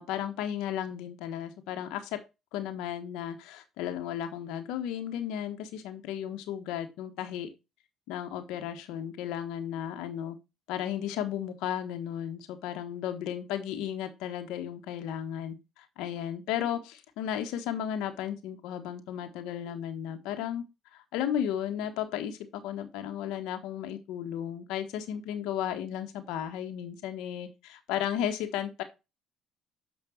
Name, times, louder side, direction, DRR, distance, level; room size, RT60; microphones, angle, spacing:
voice 1, 0.0-2.2 2.5-7.5 8.1-10.4 10.7-20.6 20.9-28.8, left 10 dB, 80° left, 8 dB, 1.3 m, -34 dB
7.3 x 5.2 x 4.7 m, 0.26 s
supercardioid pair, 75°, 0 cm